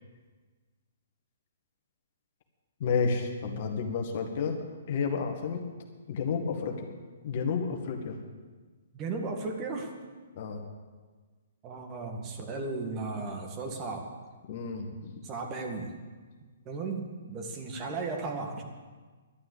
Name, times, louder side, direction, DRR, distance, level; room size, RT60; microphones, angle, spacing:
voice 1, 2.8-4.6 4.9-5.6 6.1-6.9 7.2-8.2 10.3-10.6 14.5-15.1, left 5 dB, 50° left, 4 dB, 1.8 m, -31 dB
voice 2, 8.9-9.9 11.6-14.1 15.2-16.0 16.7-18.6, right 3 dB, 30° right, 2 dB, 1.9 m, -35 dB
11.5 x 9.7 x 8.2 m, 1.4 s
figure-of-eight pair, 130°, 0 cm